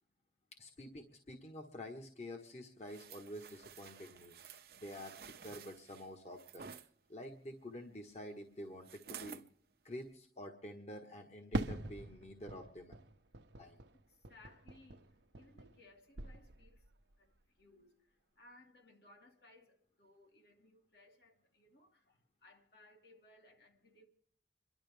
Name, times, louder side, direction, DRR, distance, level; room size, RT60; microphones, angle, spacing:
voice 1, 0.6-6.7 7.1-9.4 9.8-13.0 13.6-13.8, left 1 dB, 40° left, 1.4 m, -49 dB
sound 1, 2.9-6.9 8.8-9.5 10.0-10.1, right 7 dB, 60° right, 0.7 m, -53 dB
Fireworks, 11.5-15.9 16.2-17.0, right 2 dB, 90° right, 0.8 m, -43 dB
voice 2, 14.0-16.9 17.2-24.1, left 2 dB, 70° left, 2.8 m, -64 dB
28.0 x 11.5 x 3.5 m
head